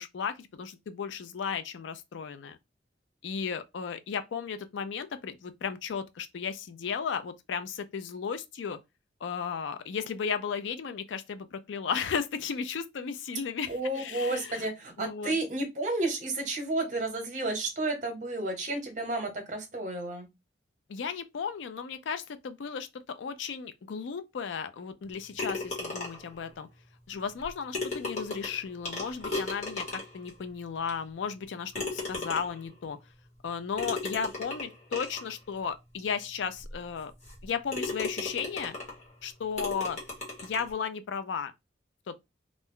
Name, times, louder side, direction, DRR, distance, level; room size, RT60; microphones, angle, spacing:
voice 1, 0.0-2.6 3.2-8.8 9.2-14.7 15.0-15.4 20.9-26.7 27.1-33.0 33.4-37.1 37.4-38.8 39.2-40.0 40.4-41.5 42.1-42.2, left 6 dB, 80° left, 0.4 m, -35 dB
voice 2, 13.7-20.3, right 2 dB, 40° right, 0.8 m, -31 dB
sound 1, 25.4-26.3 27.4-27.5 27.7-30.3 30.9-31.0 31.7-32.7 33.8-35.3 36.0-36.1 36.6-36.7 37.2-37.4 37.7-39.0 39.6-40.7, left 2 dB, 40° left, 1.2 m, -35 dB
2.5 x 2.2 x 3.5 m
head